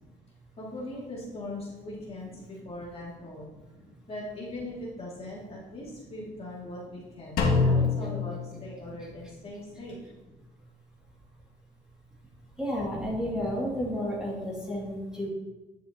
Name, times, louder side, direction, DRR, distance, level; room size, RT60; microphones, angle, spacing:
voice 1, 0.6-3.5 4.1-10.0 13.8-14.5, left 1 dB, 35° left, -5 dB, 2.6 m, -40 dB
Drum, 7.4-9.3, left 4 dB, 60° left, 1.6 m, -26 dB
voice 2, 12.5-15.3, equal, 5° right, -6 dB, 2.6 m, -32 dB
9.7 x 6.4 x 3.0 m, 1.1 s
cardioid pair, 110°, 17 cm